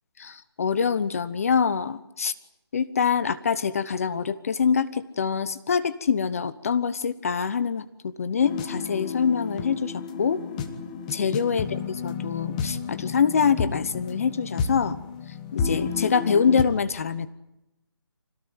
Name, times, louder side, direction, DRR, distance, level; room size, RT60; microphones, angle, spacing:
voice 1, 0.2-2.3 2.7-10.4 11.1-15.0 15.5-17.3, left 6 dB, 35° left, 15 dB, 0.9 m, -25 dB
sound 1, 8.4-16.6, left 5 dB, 15° left, 1.4 m, -31 dB
25.5 x 18.0 x 9.7 m, 0.89 s
figure-of-eight pair, 165°, 14 cm